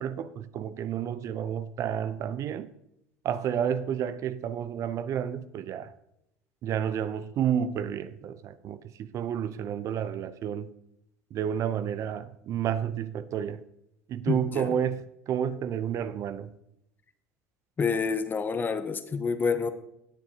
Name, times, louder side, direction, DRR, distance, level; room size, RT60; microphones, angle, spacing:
voice 1, 0.0-2.7 3.2-5.9 6.6-10.7 11.3-13.6 14.1-16.5, right 9 dB, 45° right, 0.5 m, -30 dB
voice 2, 14.3-14.8 17.8-19.7, left 5 dB, 25° left, 0.9 m, -28 dB
19.0 x 6.8 x 2.8 m
hypercardioid pair, 85°, 7 cm